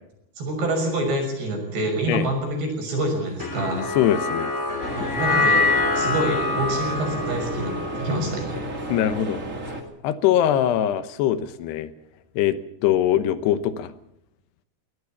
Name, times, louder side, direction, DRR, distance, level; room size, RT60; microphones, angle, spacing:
voice 1, 0.4-3.9 4.9-5.7 6.0-8.6, right 1 dB, 75° right, 4 dB, 8.0 m, -26 dB
sound 1, 3.4-9.8, left 3 dB, 25° left, 1.8 m, -26 dB
voice 2, 4.0-4.5 4.8-5.1 8.9-9.4 10.0-11.9 12.4-13.9, left 11 dB, 80° left, 13 dB, 3.1 m, -22 dB
sound 2, 4.8-9.8, right 2 dB, 30° right, 1.4 m, -33 dB
22.5 x 17.5 x 7.1 m, 0.81 s
omnidirectional pair, 4.8 m